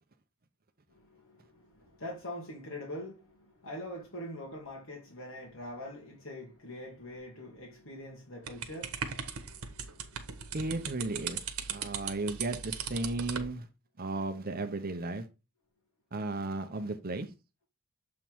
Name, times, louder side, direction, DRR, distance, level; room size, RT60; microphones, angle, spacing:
voice 1, 0.9-10.6, left 1 dB, 65° left, 1.8 m, -44 dB
sound 1, 8.5-13.5, right 7 dB, 80° right, 1.2 m, -38 dB
voice 2, 10.5-11.4 11.7-13.7 14.0-15.3 16.1-17.3, right 2 dB, 40° right, 0.8 m, -34 dB
7.3 x 3.7 x 4.6 m
head